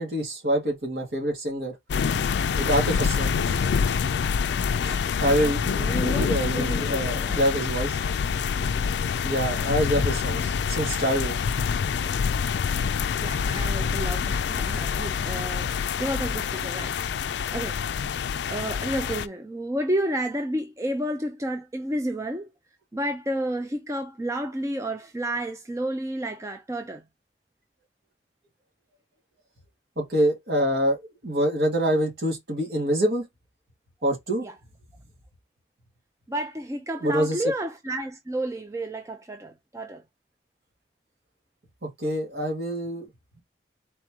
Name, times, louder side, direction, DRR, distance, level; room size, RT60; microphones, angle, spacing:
voice 1, 0.0-1.7 2.6-3.6 4.8-8.0 9.2-11.4 30.0-33.2 34.0-34.4 37.0-37.4 41.8-43.1, right 1 dB, 60° right, 2.0 m, -26 dB
sound 1, 1.9-19.3, left 6 dB, 75° left, 0.3 m, -26 dB
voice 2, 5.4-7.4 13.1-17.8 18.5-22.5 22.9-27.0 34.4-34.5 36.3-40.0, right 1 dB, 15° right, 0.5 m, -31 dB
4.2 x 3.0 x 3.6 m
head